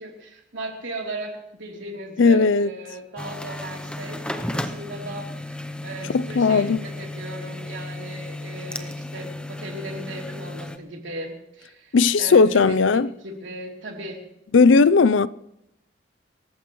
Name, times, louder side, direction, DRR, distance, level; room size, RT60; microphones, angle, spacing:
voice 1, 0.0-11.9 12.2-14.2, right 1 dB, 75° right, 3.3 m, -37 dB
voice 2, 2.2-2.7 6.1-6.8 11.9-13.1 14.5-15.3, left 4 dB, 80° left, 0.5 m, -16 dB
sound 1, 3.2-10.8, left 1 dB, 5° left, 0.7 m, -34 dB
26.5 x 14.5 x 3.1 m
head